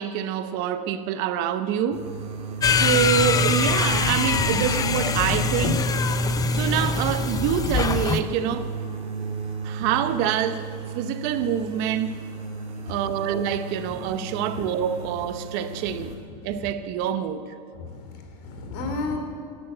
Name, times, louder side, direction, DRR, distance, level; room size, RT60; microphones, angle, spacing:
voice 1, 0.0-2.1 2.7-5.8 6.5-8.7 9.6-10.7 10.9-12.1 12.9-16.1 16.4-17.5, right 9 dB, 55° right, 0.9 m, -26 dB
sound 1, 1.9-16.2, right 3 dB, 30° right, 2.4 m, -34 dB
sound 2, 2.6-8.2, left 4 dB, 15° left, 0.6 m, -23 dB
voice 2, 17.7-19.2, left 3 dB, 60° left, 3.1 m, -33 dB
13.0 x 11.0 x 8.0 m
supercardioid pair, 140°, 21 cm